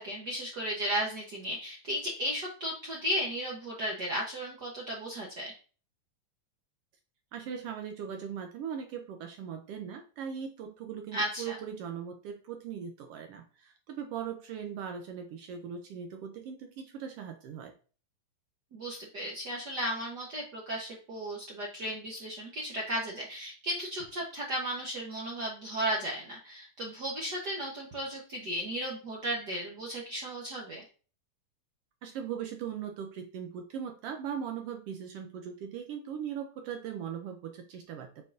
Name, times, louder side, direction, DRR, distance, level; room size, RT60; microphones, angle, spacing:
voice 1, 0.0-5.5 11.1-11.6 18.7-30.8, equal, 65° right, -2 dB, 1.0 m, -35 dB
voice 2, 7.3-17.7 32.0-38.2, right 8 dB, 80° right, 5 dB, 1.3 m, -39 dB
8.1 x 4.5 x 2.6 m, 0.38 s
omnidirectional pair, 3.3 m